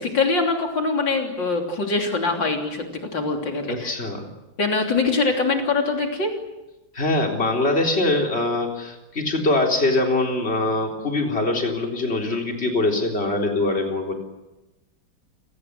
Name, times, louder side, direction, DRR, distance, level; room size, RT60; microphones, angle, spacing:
voice 1, 0.0-2.8 3.1-4.0 4.6-6.3, left 3 dB, 75° left, 2 dB, 4.0 m, -23 dB
voice 2, 3.7-4.3 6.9-14.1, left 2 dB, 35° left, 1 dB, 4.1 m, -23 dB
30.0 x 19.5 x 8.2 m, 1.0 s
omnidirectional pair, 2.0 m